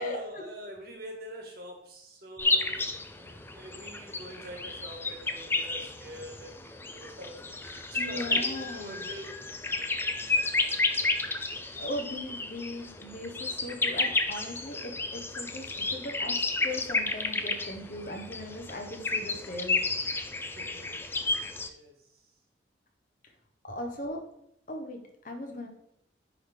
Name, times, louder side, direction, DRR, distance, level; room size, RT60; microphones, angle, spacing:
voice 1, 0.0-9.4 10.2-10.6 20.3-21.4 21.6-21.9, equal, 55° right, 1 dB, 1.7 m, -45 dB
sound 1, 2.4-21.7, left 3 dB, 10° left, 0.4 m, -32 dB
voice 2, 8.0-9.0 11.8-19.8 23.6-24.2 24.7-25.7, left 1 dB, 45° left, 3 dB, 1.1 m, -38 dB
9.5 x 3.3 x 3.7 m, 0.75 s
head